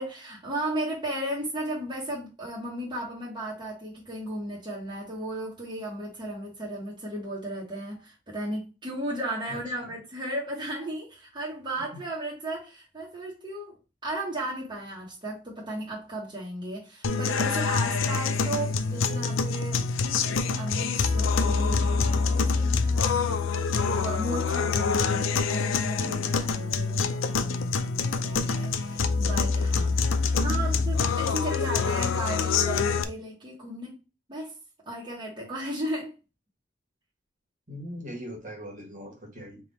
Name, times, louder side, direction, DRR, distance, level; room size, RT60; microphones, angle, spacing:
voice 1, 0.0-13.8 14.0-19.8 20.2-34.0 34.3-34.6 34.9-36.1, right 1 dB, 25° right, 1.3 m, -35 dB
voice 2, 9.5-9.9 30.3-30.7 37.7-39.6, right 1 dB, 45° right, 1.6 m, -40 dB
sound 1, 17.0-33.0, left 4 dB, 90° left, 0.5 m, -26 dB
3.5 x 2.8 x 4.0 m
head